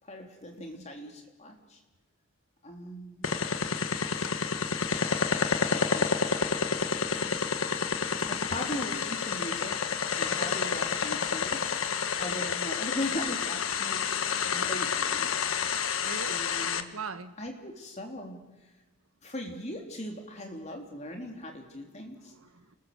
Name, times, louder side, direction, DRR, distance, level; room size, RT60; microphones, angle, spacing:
voice 1, 0.0-1.8 2.6-3.5 5.3-6.1 8.3-11.6 12.2-15.3 16.2-16.9 17.4-18.7 19.2-22.3, left 1 dB, 30° left, 3.6 m, -39 dB
sound 1, 3.2-16.8, left 6 dB, 75° left, 1.4 m, -29 dB
voice 2, 7.2-7.8 12.3-12.5 16.0-16.4 16.9-17.3 22.3-22.7, right 4 dB, 80° right, 1.4 m, -42 dB
28.0 x 20.5 x 6.9 m
head